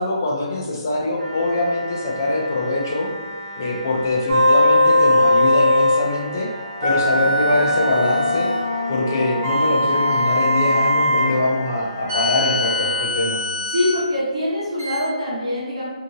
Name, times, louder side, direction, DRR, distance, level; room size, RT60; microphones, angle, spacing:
voice 1, 0.0-3.1 3.6-6.5 6.8-8.5 8.9-13.4, left 2 dB, 30° left, -1 dB, 0.4 m, -23 dB
sound 1, 1.2-13.0, equal, 80° right, 1.0 m, -36 dB
sound 2, 4.3-6.1 6.8-8.7 9.4-11.3 12.1-14.0 14.8-15.0, left 1 dB, 25° right, 0.6 m, -19 dB
sound 3, 6.2-13.5, left 3 dB, 60° left, 0.8 m, -31 dB
voice 2, 13.7-15.9, left 1 dB, 55° right, -7 dB, 1.0 m, -23 dB
2.7 x 2.6 x 2.6 m, 1.3 s
hypercardioid pair, 180°, 4 cm